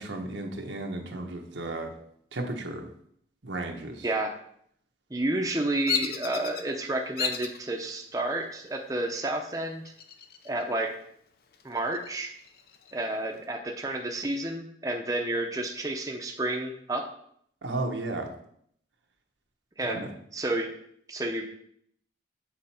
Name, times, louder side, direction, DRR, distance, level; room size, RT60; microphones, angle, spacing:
voice 1, 0.0-1.9 2.3-2.9 3.4-4.1 17.6-18.3 19.8-20.1, right 2 dB, 90° right, 2 dB, 1.2 m, -34 dB
voice 2, 4.0-4.3 5.1-9.8 10.4-11.0 11.6-12.3 12.9-17.1 19.8-20.1 20.3-20.7 21.1-21.5, right 2 dB, 20° right, 2 dB, 0.6 m, -30 dB
Bird vocalization bird call bird song, 5.9-6.6 7.2-7.6 8.2-8.7 9.8-10.6 11.0-11.1 11.5-12.9, left 8 dB, 55° left, 0.5 m, -33 dB
7.6 x 4.3 x 4.4 m, 0.67 s
head